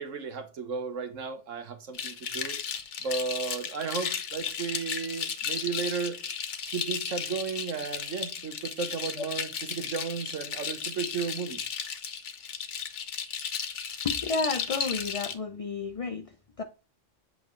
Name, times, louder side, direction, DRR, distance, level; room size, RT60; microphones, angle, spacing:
voice 1, 0.0-2.6 3.0-6.2 6.7-11.6, right 5 dB, 90° right, 1.4 m, -34 dB
sound 1, 1.9-15.3, left 7 dB, 70° left, 1.2 m, -35 dB
voice 2, 14.0-16.6, left 4 dB, 45° left, 0.4 m, -32 dB
8.1 x 4.8 x 3.1 m
omnidirectional pair, 1.3 m